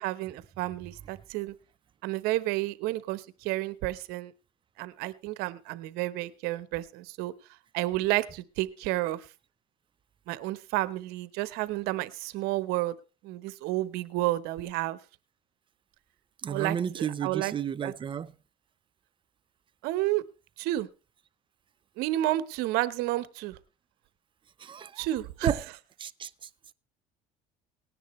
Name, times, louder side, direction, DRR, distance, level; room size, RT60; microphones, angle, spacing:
voice 1, 0.0-1.5 2.0-4.3 4.8-7.3 7.7-9.3 10.3-12.9 13.2-15.0 16.5-17.5 17.8-17.9 19.8-20.2 20.6-20.9 22.0-23.6 25.0-25.5, right 16 dB, 80° right, 1.0 m, -31 dB
voice 2, 16.4-18.3 24.6-25.1 25.4-25.6 26.0-26.5, right 8 dB, 30° right, 0.7 m, -32 dB
18.5 x 10.0 x 3.1 m
cardioid pair, 110°, 16 cm